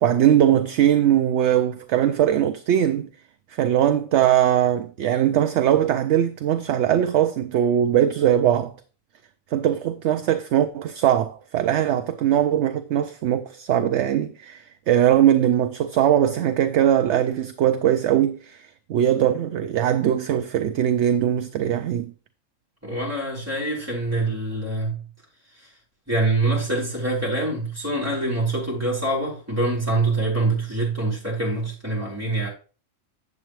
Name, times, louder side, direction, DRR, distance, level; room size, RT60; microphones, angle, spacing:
voice 1, 0.0-3.1 3.5-8.7 9.5-22.1, right 10 dB, 70° right, 0.8 m, -20 dB
voice 2, 22.8-25.0 26.1-32.5, right 2 dB, 10° right, 3.7 m, -25 dB
8.4 x 7.7 x 3.1 m
omnidirectional pair, 1.3 m